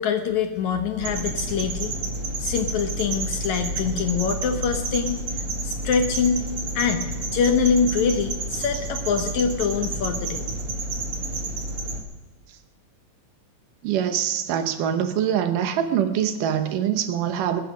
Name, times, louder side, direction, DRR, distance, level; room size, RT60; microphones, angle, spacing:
voice 1, 0.0-2.0 2.4-5.2 5.6-7.1 7.3-10.4, left 6 dB, 70° left, 7 dB, 2.0 m, -24 dB
sound 1, 1.0-12.0, right 2 dB, 45° right, 2.2 m, -30 dB
voice 2, 13.8-17.6, right 9 dB, 75° right, 9 dB, 2.5 m, -24 dB
20.5 x 10.5 x 5.0 m, 1.2 s
omnidirectional pair, 4.0 m